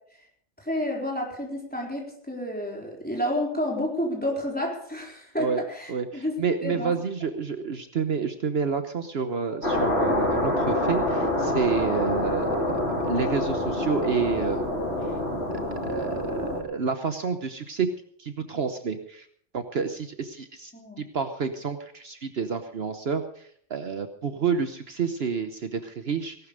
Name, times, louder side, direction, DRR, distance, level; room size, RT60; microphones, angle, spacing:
voice 1, 0.6-6.4 6.6-7.0 20.7-21.0, left 1 dB, 5° left, -1 dB, 4.0 m, -30 dB
voice 2, 5.9-12.7 13.0-14.6 15.8-17.9 18.2-19.3 19.5-26.4, right 5 dB, 60° right, 8 dB, 1.2 m, -29 dB
sound 1, 9.6-16.6, left 1 dB, 65° left, 4.6 m, -26 dB
18.0 x 12.0 x 5.2 m, 0.62 s
omnidirectional pair, 1.2 m